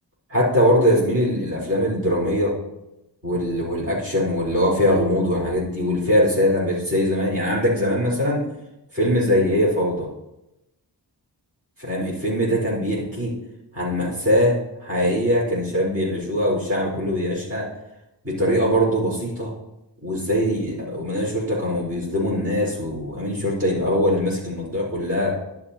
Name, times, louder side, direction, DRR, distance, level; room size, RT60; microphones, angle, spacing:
voice 1, 0.3-2.5 3.2-8.4 8.9-10.1 11.8-13.3 13.7-17.7 18.2-19.5 20.0-25.4, equal, 30° right, -6 dB, 4.4 m, -22 dB
11.5 x 11.0 x 2.9 m, 0.93 s
wide cardioid pair, 70°, 43 cm